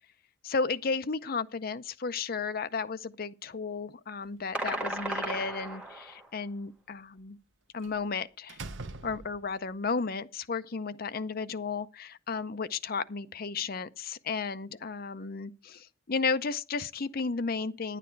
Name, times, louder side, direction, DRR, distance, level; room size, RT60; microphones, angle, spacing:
voice 1, 0.4-7.4 7.7-8.6 9.0-18.0, left 4 dB, 45° left, 0.6 m, -33 dB
sound 1, 4.5-6.3, right 1 dB, 5° right, 1.7 m, -34 dB
Slam, 4.6-5.7 7.8-8.0 8.5-9.7, right 3 dB, 65° right, 0.9 m, -44 dB
10.0 x 10.0 x 4.6 m
head